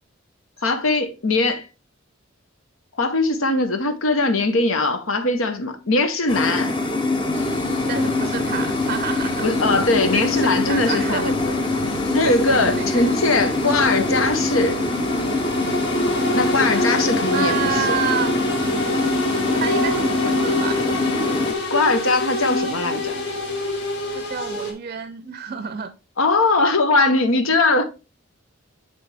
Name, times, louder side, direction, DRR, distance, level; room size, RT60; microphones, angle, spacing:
voice 1, 0.6-1.7 3.0-6.7 9.4-11.5 12.1-14.8 16.3-18.0 21.7-23.2 26.2-27.8, left 3 dB, 85° left, 1.0 m, -20 dB
sound 1, 6.3-21.5, left 2 dB, 25° left, 0.7 m, -24 dB
sound 2, 7.3-24.7, left 1 dB, 55° left, 1.5 m, -28 dB
voice 2, 7.9-9.5 10.1-11.3 12.5-12.9 17.3-18.3 19.6-20.9 24.1-25.9, right 7 dB, 40° right, 0.5 m, -29 dB
8.5 x 3.5 x 3.3 m
head